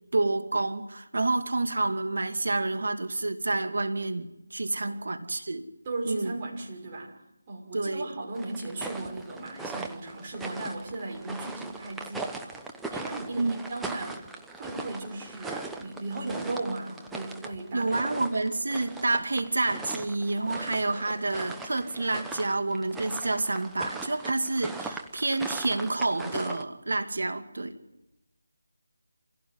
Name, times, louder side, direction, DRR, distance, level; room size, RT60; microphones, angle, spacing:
voice 1, 0.1-5.7 6.1-6.3 7.7-8.1 13.4-13.6 17.7-27.8, right 2 dB, 65° right, 7 dB, 2.3 m, -28 dB
voice 2, 5.8-7.2 7.5-12.6 12.9-14.3 14.6-17.9, right 2 dB, 25° right, -2 dB, 6.1 m, -36 dB
sound 1, 8.4-26.6, right 3 dB, 5° right, 0.9 m, -40 dB
27.5 x 16.5 x 9.7 m, 0.93 s
figure-of-eight pair, 160°, 0 cm